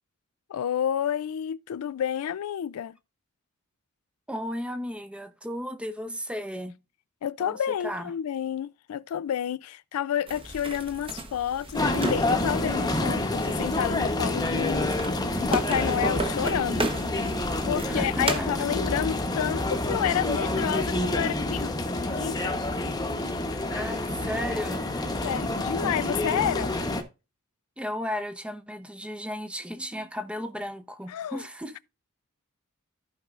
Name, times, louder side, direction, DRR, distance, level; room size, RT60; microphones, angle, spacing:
voice 1, 0.5-3.0 7.2-14.9 15.4-16.9 17.7-22.6 25.2-26.7 31.1-31.4, left 9 dB, 80° left, 0.3 m, -30 dB
voice 2, 4.3-6.8 7.4-7.6 7.8-8.1 17.9-18.5 23.7-24.9 27.8-31.8, equal, 5° right, 0.7 m, -34 dB
sound 1, 10.3-18.4, right 2 dB, 25° right, 1.0 m, -34 dB
sound 2, 11.7-27.0, left 2 dB, 20° left, 1.0 m, -28 dB
sound 3, 12.2-18.6, left 1 dB, 65° right, 1.4 m, -47 dB
14.5 x 5.3 x 2.4 m
head